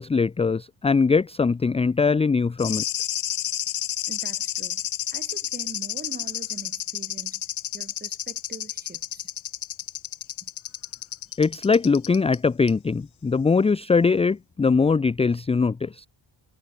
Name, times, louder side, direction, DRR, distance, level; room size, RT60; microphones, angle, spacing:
voice 1, 0.0-2.8 11.4-16.1, left 4 dB, 15° left, 0.4 m, -21 dB
sound 1, 2.6-12.4 12.7-12.8, left 12 dB, 70° left, 3.2 m, -31 dB
voice 2, 4.1-4.8 5.1-7.4 7.7-9.3 10.4-10.5, right 4 dB, 20° right, 3.3 m, -43 dB
wide cardioid pair, 175°, 49 cm